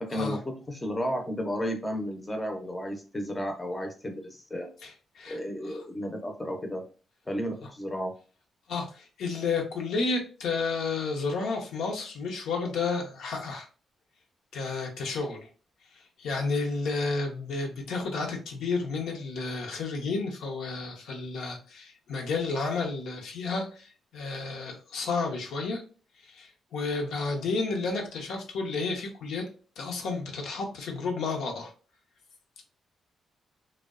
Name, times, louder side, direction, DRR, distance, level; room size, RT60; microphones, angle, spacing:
voice 1, 0.0-4.7 5.3-6.8 7.3-8.1, equal, 15° left, 4 dB, 0.4 m, -33 dB
voice 2, 4.8-5.8 8.7-13.7 14.5-15.5 15.9-25.8 26.2-29.4 29.8-31.7, left 4 dB, 85° left, 1 dB, 0.6 m, -31 dB
2.6 x 2.0 x 2.3 m, 0.38 s
cardioid pair, 135°, 0 cm